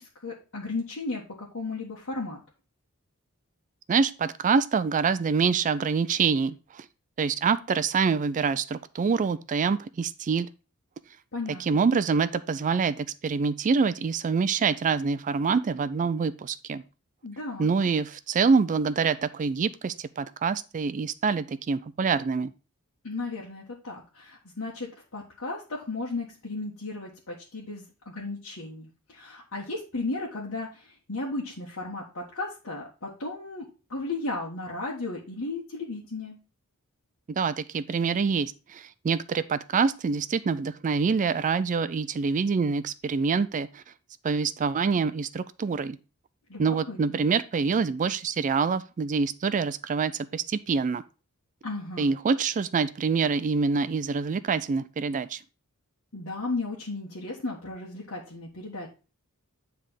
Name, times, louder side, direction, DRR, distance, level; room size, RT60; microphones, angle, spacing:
voice 1, 0.0-2.4 11.3-11.8 17.2-17.7 23.0-36.4 46.5-47.2 51.6-52.1 56.1-58.9, left 3 dB, 65° left, 1.5 m, -35 dB
voice 2, 3.9-6.9 7.2-10.5 11.6-16.8 17.6-22.5 37.3-43.8 44.2-46.0 46.6-51.0 52.0-55.4, right 5 dB, 35° right, 0.4 m, -26 dB
9.6 x 3.5 x 5.0 m
head